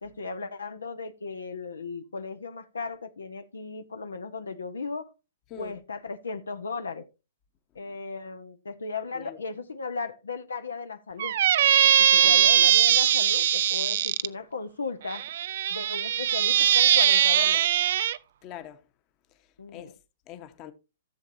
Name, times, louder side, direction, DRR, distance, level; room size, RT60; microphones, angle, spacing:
voice 1, 0.0-5.1 5.6-7.0 7.7-11.4 11.8-15.2 15.7-17.7 19.6-19.9, left 4 dB, 85° left, 0.9 m, -36 dB
voice 2, 9.1-9.4 12.1-12.4 18.4-18.9 19.3-20.0 20.3-20.7, left 11 dB, 35° left, 1.1 m, -44 dB
Squeak, 11.2-14.3 15.1-18.2, right 11 dB, 60° right, 0.4 m, -21 dB
14.5 x 7.0 x 2.7 m
hypercardioid pair, 125°, 0 cm